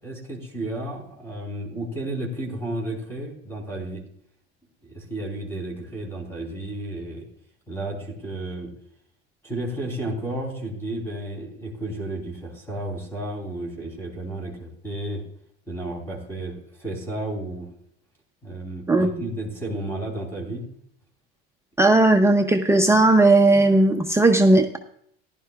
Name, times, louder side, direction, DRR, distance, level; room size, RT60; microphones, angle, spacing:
voice 1, 0.0-4.0 4.8-7.2 7.7-8.7 9.4-15.2 15.7-17.7 18.4-20.6, right 1 dB, 10° left, 0 dB, 3.4 m, -32 dB
voice 2, 21.8-24.8, right 2 dB, 10° right, 4 dB, 0.6 m, -17 dB
15.0 x 11.5 x 2.4 m, 0.67 s
supercardioid pair, 105°, 29 cm